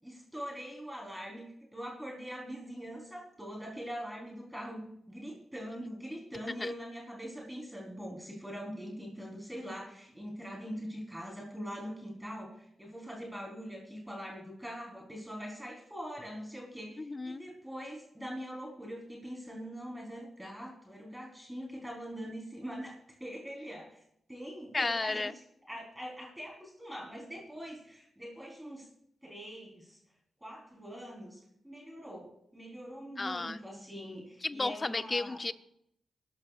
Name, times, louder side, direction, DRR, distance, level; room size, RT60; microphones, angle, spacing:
voice 1, 0.0-24.0 24.3-25.4 25.7-28.9 29.2-30.0 30.4-35.4, equal, 5° right, -2 dB, 4.1 m, -43 dB
voice 2, 17.0-17.4 24.7-25.3 33.2-33.6 34.4-35.5, left 3 dB, 30° left, 10 dB, 0.7 m, -33 dB
24.0 x 12.5 x 2.5 m, 0.74 s
cardioid pair, 70°, 0 cm